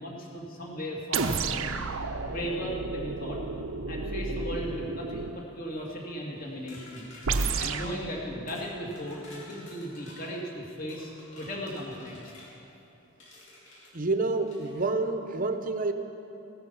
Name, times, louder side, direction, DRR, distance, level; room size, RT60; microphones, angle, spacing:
voice 1, 0.0-1.8 2.2-3.4 3.9-7.1 7.6-12.3, equal, 40° left, -3 dB, 2.6 m, -36 dB
sound 1, 1.1-5.4 7.3-8.0, right 4 dB, 80° right, 0.7 m, -31 dB
sound 2, 6.7-7.9 8.5-8.7 8.9-10.3 10.9-12.5 13.2-13.9 14.5-14.7, left 1 dB, 60° left, 3.9 m, -50 dB
voice 2, 13.9-15.9, right 3 dB, 40° right, 8 dB, 0.8 m, -28 dB
16.0 x 13.0 x 5.6 m, 3.0 s
head